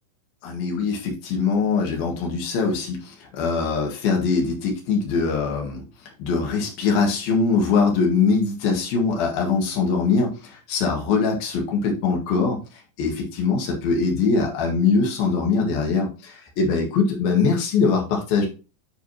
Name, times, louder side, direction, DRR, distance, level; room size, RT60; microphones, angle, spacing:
voice 1, 0.4-5.8 6.2-10.3 10.7-12.6 13.0-18.5, left 4 dB, 85° left, 0 dB, 3.7 m, -22 dB
10.5 x 4.8 x 2.9 m, 0.32 s
omnidirectional pair, 4.1 m